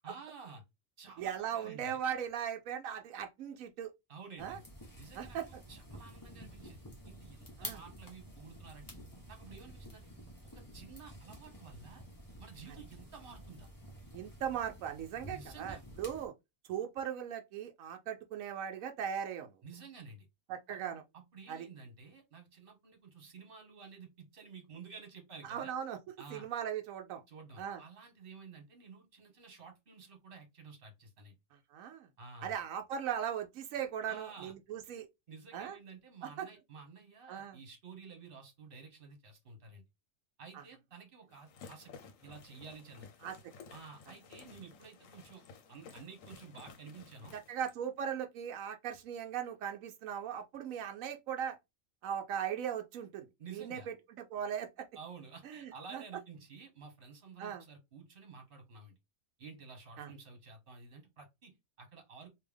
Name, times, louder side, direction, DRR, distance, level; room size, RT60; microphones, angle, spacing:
voice 1, 0.0-0.6 1.0-2.0 4.1-4.6 5.0-6.8 7.0-8.9 9.3-10.1 10.5-12.0 12.4-13.7 15.3-15.8 19.6-20.3 20.7-20.8 21.1-25.7 26.2-26.5 27.3-31.3 32.2-32.5 34.1-34.5 35.3-39.8 40.4-41.9 42.2-43.1 43.7-45.4 45.7-47.4 53.4-53.9 54.9-59.0 59.4-62.3, right 5 dB, 45° right, 1.4 m, -52 dB
voice 2, 1.2-3.9 4.4-4.6 5.1-5.6 7.6-7.8 14.1-16.3 16.7-19.5 20.5-21.0 21.5-21.7 25.4-26.0 26.3-27.2 27.6-27.8 31.7-32.1 32.4-35.1 35.5-35.8 36.2-36.5 37.3-37.6 40.5-40.6 43.2-43.4 47.3-51.6 52.0-54.9 55.4-56.0 57.4-57.6 60.0-60.1, right 9 dB, 90° right, 1.0 m, -39 dB
sound 1, 4.4-16.3, equal, 15° left, 1.2 m, -50 dB
sound 2, 41.3-47.8, left 5 dB, 80° left, 1.1 m, -55 dB
3.4 x 2.8 x 3.4 m
omnidirectional pair, 1.4 m